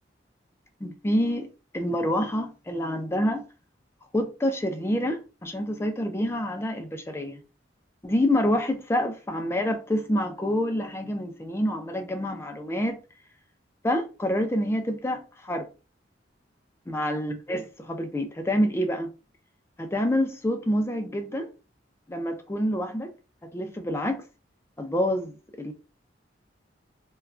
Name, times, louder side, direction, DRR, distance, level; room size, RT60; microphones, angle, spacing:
voice 1, 0.8-1.5 1.7-3.4 4.1-7.4 8.0-13.0 13.8-15.7 16.9-19.1 19.8-21.5 22.1-23.1 23.5-24.2 24.8-25.7, equal, 15° left, 0.4 m, -27 dB
2.4 x 2.2 x 3.2 m
head